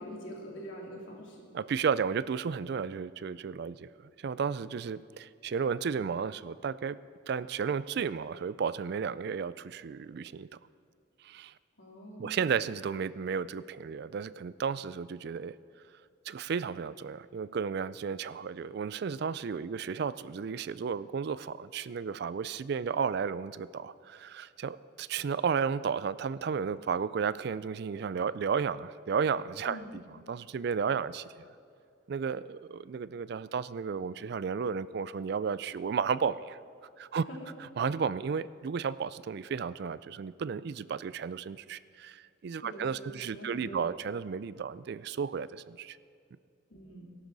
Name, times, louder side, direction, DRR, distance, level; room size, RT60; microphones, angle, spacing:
voice 1, 0.0-1.5 11.8-12.4 29.7-29.9 37.3-37.5 42.6-43.9 46.7-47.1, equal, 85° left, -3 dB, 3.2 m, -44 dB
voice 2, 1.5-3.9 4.2-7.0 7.3-10.5 11.2-11.5 12.2-15.6 16.3-30.0 30.3-31.3 32.1-36.6 37.0-37.2 37.6-46.0, right 6 dB, 55° right, 17 dB, 0.3 m, -33 dB
18.5 x 11.5 x 4.0 m, 2.4 s
head